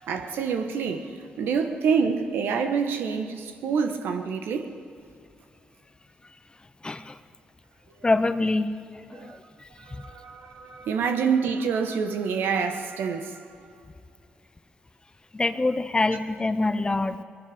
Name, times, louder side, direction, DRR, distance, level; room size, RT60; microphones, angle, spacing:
voice 1, 0.0-4.7 8.0-8.1 9.1-9.4 9.8-13.4, right 6 dB, 75° right, 1.3 m, -27 dB
voice 2, 6.8-7.2 8.0-9.4 9.9-10.0 15.3-17.2, left 2 dB, 25° left, 0.8 m, -25 dB
20.5 x 11.5 x 5.0 m
supercardioid pair, 60°, 4 cm